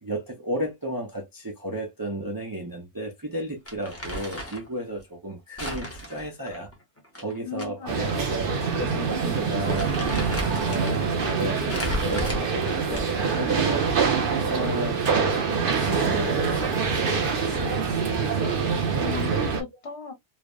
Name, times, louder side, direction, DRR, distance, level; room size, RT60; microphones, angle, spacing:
voice 1, 0.0-6.7 7.2-10.2 10.6-13.1 13.4-14.2 14.5-15.0 15.7-18.1, right 1 dB, 30° right, 0.4 m, -33 dB
Crumpling crinkling, 3.7-4.7 5.6-7.7 8.0-8.1 8.9-9.1 9.4-11.0 11.7-13.3, equal, 15° left, 0.6 m, -33 dB
voice 2, 7.4-8.3 19.0-20.1, left 7 dB, 65° left, 1.2 m, -37 dB
sound 1, 7.9-19.6, right 5 dB, 55° right, 0.8 m, -25 dB
3.2 x 2.0 x 2.3 m
omnidirectional pair, 1.2 m